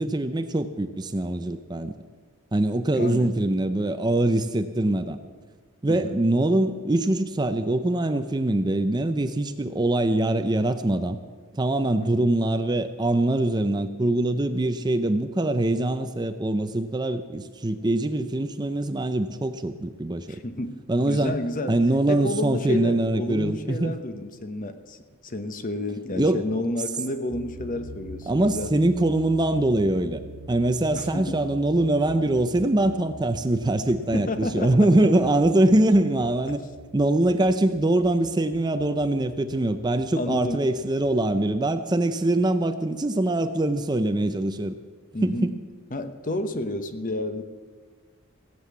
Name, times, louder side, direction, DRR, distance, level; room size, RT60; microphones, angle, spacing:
voice 1, 0.0-1.9 2.5-5.2 5.8-11.2 11.5-20.4 20.9-21.4 21.7-23.9 26.2-26.4 28.3-30.2 30.5-36.6 36.9-44.8 45.2-45.5, right 1 dB, 20° right, 10 dB, 0.5 m, -23 dB
voice 2, 2.9-3.3 5.9-6.2 12.0-12.3 20.3-20.8 21.0-21.8 22.1-28.7 30.9-31.4 34.1-34.9 40.2-40.6 45.1-45.5 45.9-47.4, left 1 dB, 35° left, 9 dB, 0.9 m, -30 dB
sound 1, 27.3-41.7, right 2 dB, 40° right, 1.4 m, -45 dB
17.0 x 7.7 x 8.4 m, 1.5 s
head